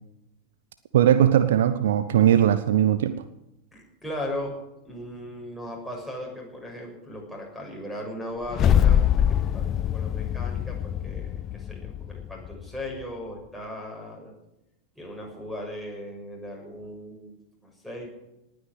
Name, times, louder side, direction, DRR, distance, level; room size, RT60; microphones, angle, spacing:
voice 1, 0.9-3.2, right 10 dB, 60° right, 12 dB, 0.8 m, -19 dB
voice 2, 3.7-4.5 4.8-9.3 9.5-14.3 14.9-18.1, left 1 dB, ahead, 1 dB, 6.6 m, -37 dB
sound 1, 8.4-12.8, left 9 dB, 30° left, 0.6 m, -24 dB
19.0 x 9.3 x 7.9 m, 0.88 s
figure-of-eight pair, 90°, 0 cm